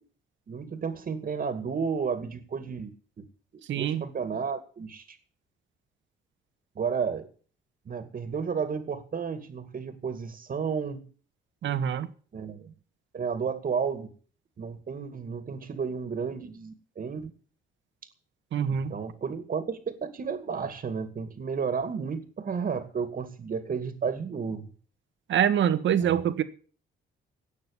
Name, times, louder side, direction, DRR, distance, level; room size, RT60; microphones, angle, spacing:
voice 1, 0.5-2.9 3.2-3.3 3.8-5.2 6.8-7.3 7.9-11.1 12.3-12.7 13.1-14.1 14.6-17.3 18.7-24.7 26.0-26.2, right 6 dB, 45° right, 2.3 m, -32 dB
voice 2, 3.7-4.0 11.6-12.1 18.5-18.9 25.3-26.4, right 9 dB, 70° right, 1.6 m, -25 dB
17.5 x 6.5 x 9.9 m
cardioid pair, 90°, 20 cm